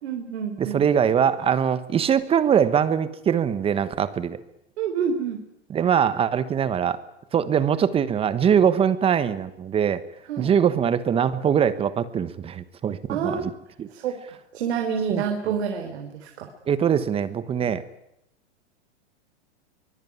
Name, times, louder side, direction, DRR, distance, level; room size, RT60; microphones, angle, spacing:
voice 1, 0.0-0.8 4.8-5.4 10.3-10.5 13.1-13.5 13.9-14.2 14.5-16.5, right 7 dB, 65° right, 4 dB, 3.9 m, -28 dB
voice 2, 0.6-4.4 5.7-7.0 7.3-10.0 10.4-13.5 13.8-13.9 15.1-15.2 16.7-17.8, right 8 dB, 15° right, 15 dB, 1.2 m, -22 dB
24.0 x 20.0 x 9.6 m, 0.82 s
hypercardioid pair, 145°, 34 cm